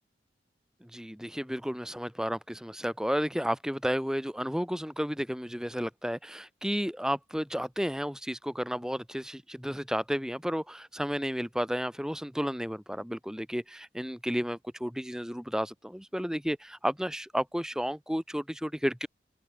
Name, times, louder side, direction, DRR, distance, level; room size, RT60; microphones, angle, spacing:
voice 1, 0.8-19.1, equal, 5° right, 3.7 m, -32 dB
open air
head